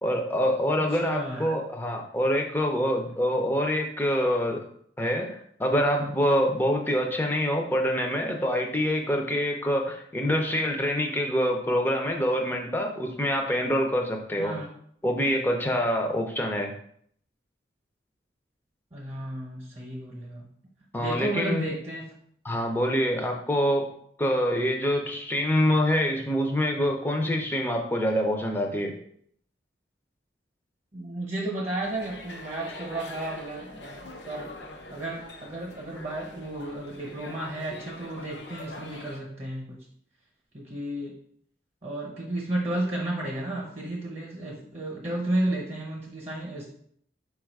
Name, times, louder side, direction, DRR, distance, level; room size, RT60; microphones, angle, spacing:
voice 1, 0.0-4.6 5.0-14.5 15.0-16.7 20.9-21.7 22.4-23.9 24.2-28.9, equal, 10° left, 2 dB, 0.5 m, -25 dB
voice 2, 0.8-1.5 14.4-14.7 18.9-20.5 21.0-22.1 30.9-34.6 34.9-39.9 40.5-41.2 41.8-46.7, right 1 dB, 35° right, -2 dB, 0.8 m, -33 dB
sound 1, 31.8-39.2, left 2 dB, 75° left, 0.6 m, -44 dB
4.7 x 2.4 x 4.6 m, 0.66 s
head